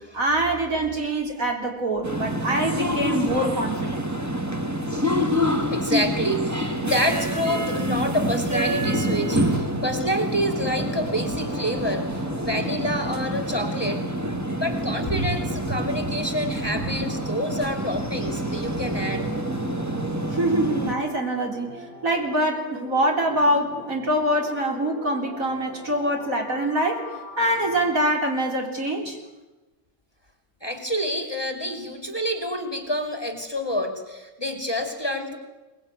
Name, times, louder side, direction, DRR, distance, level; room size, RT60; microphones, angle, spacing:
voice 1, 0.1-4.1 20.3-27.1 27.4-29.2, right 1 dB, 55° right, 2 dB, 4.2 m, -24 dB
sound 1, 2.0-20.9, equal, 10° right, 1.7 m, -27 dB
voice 2, 5.7-14.0 14.5-19.3 30.6-35.4, equal, 15° left, 5 dB, 2.7 m, -28 dB
sound 2, 9.2-27.9, equal, 90° right, 7.0 m, -43 dB
23.5 x 21.0 x 9.3 m, 1.1 s
omnidirectional pair, 1.7 m